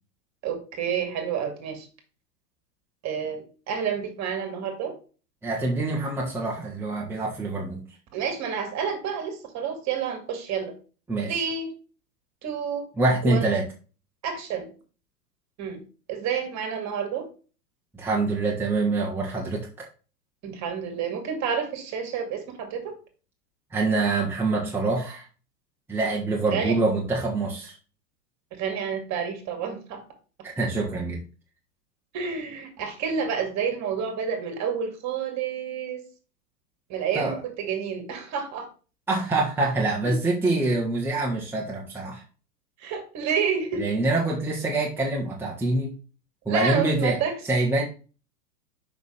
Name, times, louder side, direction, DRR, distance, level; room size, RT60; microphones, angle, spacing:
voice 1, 0.4-1.9 3.0-4.9 8.1-10.7 11.3-11.7 12.4-12.9 13.2-13.5 14.2-14.7 15.6-15.8 16.1-17.2 20.4-22.9 26.5-26.8 28.5-30.0 32.1-36.0 36.9-38.7 40.0-40.2 42.8-44.0 46.5-47.3, right 7 dB, 35° right, 6 dB, 2.3 m, -29 dB
voice 2, 5.4-7.8 11.1-11.4 13.0-13.7 17.9-19.9 23.7-25.3 25.9-27.7 30.4-31.2 37.1-37.4 39.1-42.2 43.8-45.9 46.4-47.2 47.5-47.8, right 2 dB, 5° right, -3 dB, 1.3 m, -25 dB
6.2 x 5.8 x 3.3 m, 0.35 s
hypercardioid pair, 110°, 49 cm